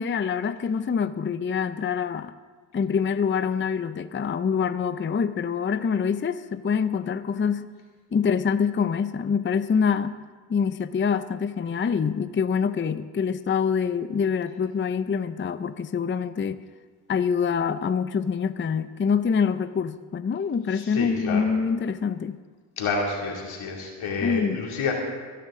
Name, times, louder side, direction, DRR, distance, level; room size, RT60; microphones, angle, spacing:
voice 1, 0.0-2.3 2.7-7.7 8.1-10.2 10.5-16.6 17.1-22.4 24.2-24.6, left 6 dB, 25° left, 12 dB, 0.5 m, -25 dB
voice 2, 20.7-21.4 22.8-24.9, left 4 dB, 90° left, -1 dB, 2.8 m, -29 dB
23.0 x 10.5 x 3.7 m, 1.4 s
cardioid pair, 65°, 47 cm